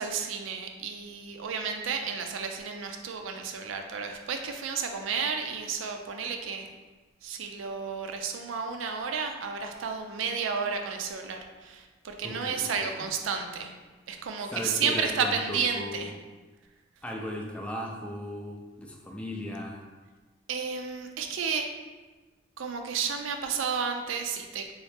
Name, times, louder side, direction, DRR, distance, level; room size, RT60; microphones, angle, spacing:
voice 1, 0.0-6.7 7.2-13.7 14.1-16.1 20.5-21.7 22.6-24.7, right 6 dB, 85° right, 4 dB, 0.4 m, -32 dB
voice 2, 12.2-12.6 14.5-16.1 17.0-19.8, left 1 dB, 5° left, -1 dB, 0.3 m, -36 dB
3.1 x 3.1 x 3.2 m, 1.3 s
head